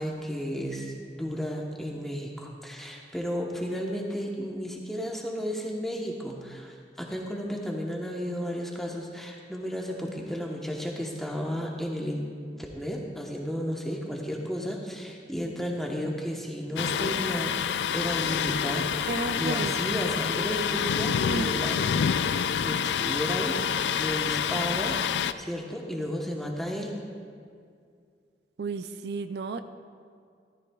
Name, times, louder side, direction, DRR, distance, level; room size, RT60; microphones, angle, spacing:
voice 1, 0.0-12.2 12.6-21.8 22.6-25.0 25.4-27.0, equal, ahead, -1 dB, 1.0 m, -33 dB
Thunder, 16.8-25.3, left 8 dB, 85° left, 0.3 m, -27 dB
voice 2, 19.1-20.1 21.2-21.6 28.6-29.6, right 4 dB, 70° right, 10 dB, 0.4 m, -33 dB
13.5 x 13.5 x 2.3 m, 2.2 s
head